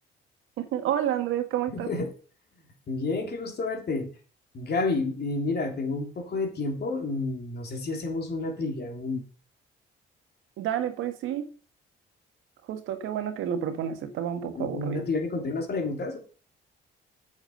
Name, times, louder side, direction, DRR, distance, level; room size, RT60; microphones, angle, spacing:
voice 1, 0.6-1.9 10.6-11.5 12.7-15.0, right 10 dB, 90° right, 1.6 m, -30 dB
voice 2, 1.7-2.1 2.9-4.1 4.5-9.2 14.5-16.2, left 3 dB, 55° left, 3.3 m, -30 dB
8.1 x 7.4 x 6.8 m
cardioid pair, 90°, 20 cm